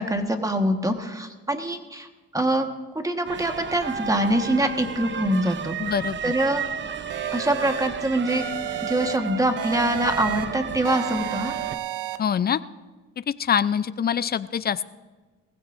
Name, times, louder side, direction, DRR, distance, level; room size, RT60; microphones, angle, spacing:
voice 1, 0.0-2.1 2.3-2.7 3.0-5.8 6.2-6.6 7.3-8.4 8.8-11.5, right 1 dB, 10° right, 6 dB, 1.4 m, -24 dB
sound 1, 3.3-11.8, right 7 dB, 40° right, 0.7 m, -33 dB
voice 2, 5.8-6.3 12.2-12.6 13.3-14.8, left 8 dB, 30° left, 15 dB, 0.5 m, -24 dB
sound 2, 7.1-7.9 8.3-9.2 9.6-10.4 10.8-12.2, right 11 dB, 90° right, 1.0 m, -32 dB
20.0 x 16.0 x 2.6 m, 1.3 s
cardioid pair, 90°, 30 cm